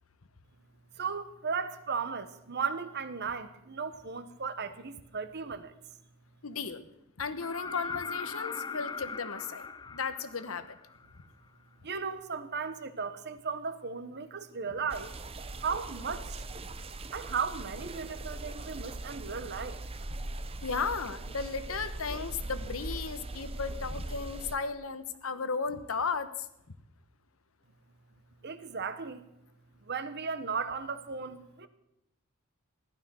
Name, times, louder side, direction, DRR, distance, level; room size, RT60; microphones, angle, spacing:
voice 1, 1.0-5.7 11.8-15.1 15.6-16.5 17.1-19.8 28.4-29.2 29.8-31.7, right 5 dB, 50° right, 11 dB, 1.1 m, -36 dB
voice 2, 6.4-6.8 7.2-10.7 20.6-26.3, left 5 dB, 75° left, 12 dB, 1.1 m, -35 dB
sound 1, 7.4-11.2 13.1-13.2, left 5 dB, 20° left, 0.4 m, -40 dB
sound 2, 14.9-24.6, right 2 dB, 25° right, 0.7 m, -40 dB
15.5 x 12.0 x 6.4 m, 0.86 s
head